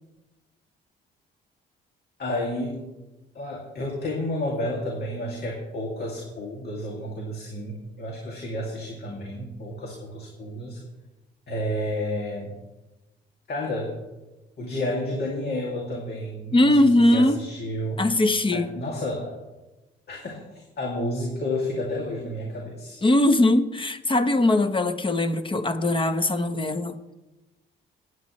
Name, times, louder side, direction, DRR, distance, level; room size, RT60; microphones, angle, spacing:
voice 1, 2.2-2.9 3.3-10.8 11.5-12.5 13.5-14.0 14.6-18.0 18.5-19.4 20.1-23.0, left 1 dB, 55° left, -2 dB, 2.6 m, -31 dB
voice 2, 16.5-17.4 18.0-18.7 23.0-27.1, left 1 dB, 25° left, 9 dB, 1.1 m, -21 dB
25.0 x 9.4 x 3.2 m, 1.1 s
cardioid pair, 90°, 20 cm